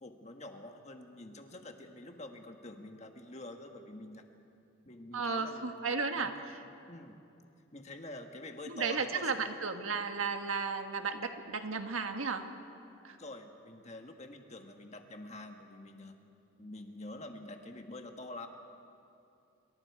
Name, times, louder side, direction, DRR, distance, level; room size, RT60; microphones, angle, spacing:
voice 1, 0.0-4.3 4.8-5.7 6.2-6.3 6.9-7.2 7.7-9.3 13.2-16.2 16.6-18.5, left 2 dB, 35° left, 4 dB, 1.4 m, -47 dB
voice 2, 5.1-6.6 8.7-12.5 13.0-13.2, right 4 dB, 85° right, 6 dB, 1.5 m, -34 dB
28.0 x 23.5 x 4.8 m, 2.7 s
head